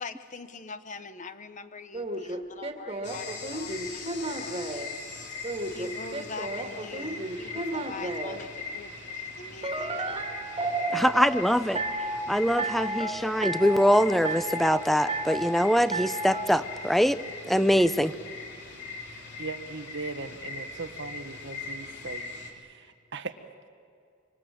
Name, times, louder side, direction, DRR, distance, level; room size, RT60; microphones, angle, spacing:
voice 1, 0.0-10.1, left 4 dB, 40° left, 10 dB, 1.1 m, -44 dB
sound 1, 1.9-4.9 5.4-8.4 9.6-11.3 11.8-12.2 12.6-13.1 13.4-13.9 14.2-14.8 15.1-15.6 15.9-16.4, right 2 dB, 30° right, 2.2 m, -32 dB
sound 2, 3.0-22.5, left 4 dB, 60° left, 3.2 m, -40 dB
voice 2, 10.9-11.8 12.3-17.2 17.4-18.1, equal, ahead, 13 dB, 0.6 m, -23 dB
voice 3, 19.4-22.2 23.1-23.3, right 3 dB, 60° right, 8 dB, 1.5 m, -38 dB
25.5 x 25.0 x 7.7 m, 2.2 s
head